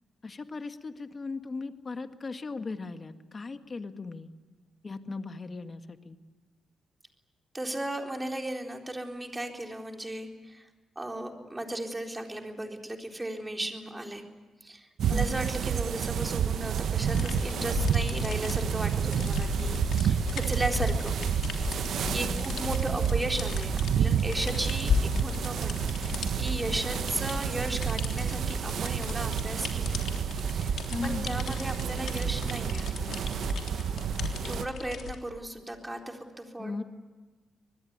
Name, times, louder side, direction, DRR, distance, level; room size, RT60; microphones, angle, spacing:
voice 1, 0.2-4.3 4.8-6.2 15.1-15.4 22.2-22.5 22.9-23.1 30.9-31.3 36.6-36.8, left 3 dB, 35° left, 8 dB, 1.8 m, -38 dB
voice 2, 7.5-10.7 11.0-14.3 14.6-21.1 22.1-23.7 24.0-24.9 25.2-30.0 30.3-30.7 31.0-33.0 34.4-36.8, right 1 dB, 15° right, 2 dB, 3.9 m, -36 dB
sound 1, 15.0-34.7, right 8 dB, 70° right, 0.9 m, -30 dB
sound 2, 17.1-35.2, left 6 dB, 75° left, 3.3 m, -35 dB
24.5 x 20.5 x 9.6 m, 1.3 s
cardioid pair, 90°, 0 cm